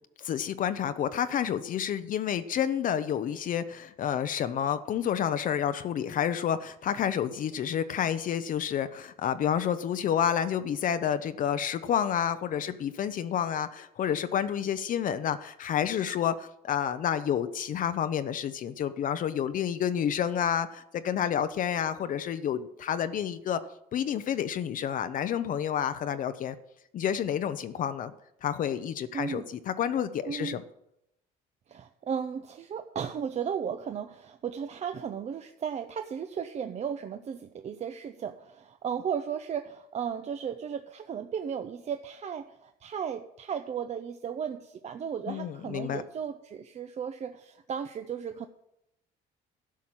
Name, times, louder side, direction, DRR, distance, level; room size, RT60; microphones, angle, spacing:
voice 1, 0.2-23.6 23.9-26.5 26.9-28.1 28.4-30.6 45.3-46.0, left 9 dB, 55° left, 10 dB, 0.7 m, -29 dB
voice 2, 29.1-29.5 30.2-30.6 31.7-48.5, right 7 dB, 40° right, 8 dB, 0.7 m, -35 dB
12.0 x 5.8 x 8.8 m, 0.81 s
cardioid pair, 110°, 17 cm